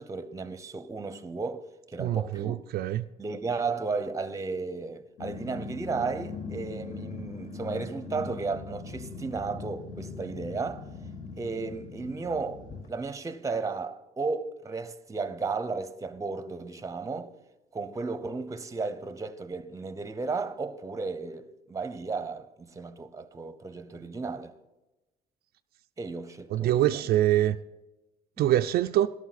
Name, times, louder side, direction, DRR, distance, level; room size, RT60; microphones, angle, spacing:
voice 1, 0.0-2.6 3.2-10.9 11.4-17.3 17.7-24.5 26.0-27.1 28.4-28.5, right 4 dB, 20° right, 0.8 m, -34 dB
voice 2, 2.0-3.0 26.5-27.6 28.4-29.1, right 13 dB, 65° right, 0.4 m, -24 dB
Growling, 5.2-12.9, left 3 dB, 55° left, 1.8 m, -40 dB
13.0 x 12.0 x 4.1 m
cardioid pair, 110°, 17 cm